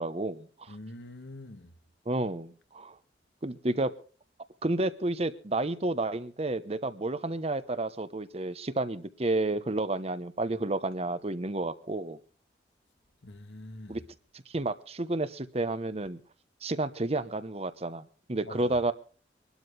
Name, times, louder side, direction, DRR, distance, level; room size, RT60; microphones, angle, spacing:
voice 1, 0.0-0.8 2.1-3.0 3.4-3.9 4.6-12.2 13.9-14.0 14.5-16.2 16.6-18.9, right 2 dB, 35° right, 1.0 m, -31 dB
voice 2, 0.7-1.7 13.2-14.0 18.4-18.7, left 1 dB, 80° left, 1.8 m, -45 dB
24.5 x 12.5 x 3.3 m
head